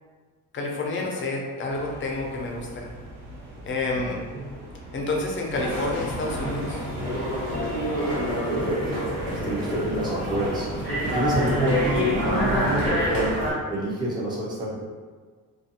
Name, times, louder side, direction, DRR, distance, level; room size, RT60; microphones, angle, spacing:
voice 1, 0.5-2.9 3.6-4.2 4.9-6.8, left 2 dB, 35° left, -1 dB, 0.5 m, -29 dB
sound 1, 1.7-13.1, right 1 dB, 85° right, 0.9 m, -42 dB
sound 2, 5.5-13.5, equal, 65° right, 1.2 m, -27 dB
voice 2, 8.5-9.0 9.3-14.7, right 1 dB, 10° right, -6 dB, 0.6 m, -27 dB
2.5 x 2.4 x 2.7 m, 1.5 s
cardioid pair, 120°, 36 cm